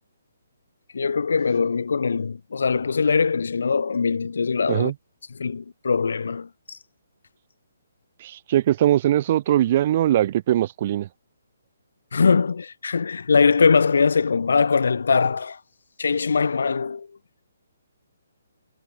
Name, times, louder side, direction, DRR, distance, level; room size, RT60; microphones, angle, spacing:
voice 1, 0.9-4.9 5.3-6.8 12.1-15.6 16.0-17.1, left 5 dB, 75° left, 4.0 m, -21 dB
voice 2, 8.2-11.1, right 12 dB, 40° right, 5.4 m, -21 dB
hypercardioid pair, 160°, 0 cm